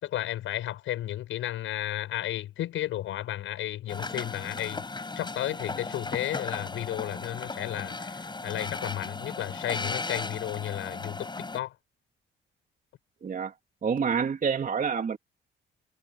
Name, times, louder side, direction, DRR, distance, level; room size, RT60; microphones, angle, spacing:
voice 1, 0.0-4.8 5.2-11.7, left 13 dB, 85° left, 7.1 m, -33 dB
sound 1, 3.9-11.6, left 3 dB, 20° left, 7.2 m, -36 dB
voice 2, 13.2-13.5 13.8-15.2, right 6 dB, 45° right, 2.8 m, -27 dB
cardioid pair, 90°, 20 cm